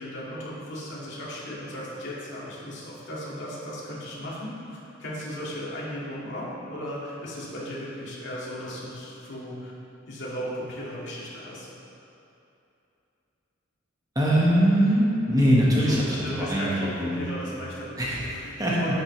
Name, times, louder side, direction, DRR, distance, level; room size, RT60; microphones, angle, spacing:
voice 1, 0.0-9.7 10.1-11.7 15.9-19.0, equal, 65° left, -7 dB, 2.1 m, -36 dB
voice 2, 14.1-17.3 18.0-18.9, equal, 20° right, -6 dB, 1.4 m, -22 dB
10.5 x 7.3 x 3.3 m, 2.8 s
head